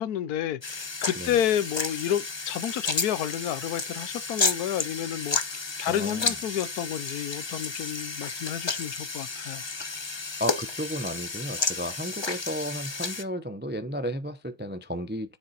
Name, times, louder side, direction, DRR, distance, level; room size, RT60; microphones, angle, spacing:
voice 1, 0.0-5.4 5.8-9.6, left 11 dB, 75° left, 1.2 m, -30 dB
sound 1, 0.6-13.2, left 4 dB, 25° left, 0.6 m, -32 dB
voice 2, 5.9-6.3 10.4-15.4, equal, 15° right, 0.3 m, -33 dB
9.4 x 7.9 x 4.2 m
omnidirectional pair, 1.6 m